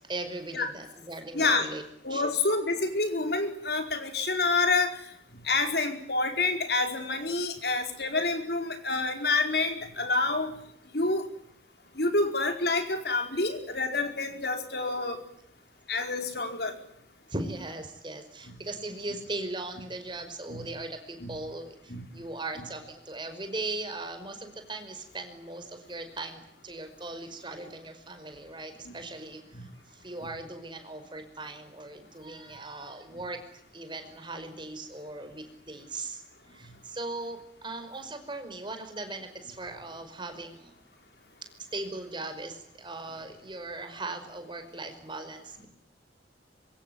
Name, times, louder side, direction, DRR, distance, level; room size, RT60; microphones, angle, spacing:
voice 1, 0.0-1.8 2.1-2.3 17.3-33.4 33.7-40.7 41.7-45.7, right 2 dB, 25° right, 7 dB, 5.2 m, -39 dB
voice 2, 1.3-1.6 2.0-5.1 5.4-10.5 10.9-11.3 11.9-15.2 15.9-16.8 20.5-20.6 21.2-21.3 21.9-22.0 28.8-28.9 29.5-29.6, left 3 dB, 60° left, 6 dB, 4.7 m, -28 dB
25.5 x 24.0 x 9.5 m, 0.72 s
head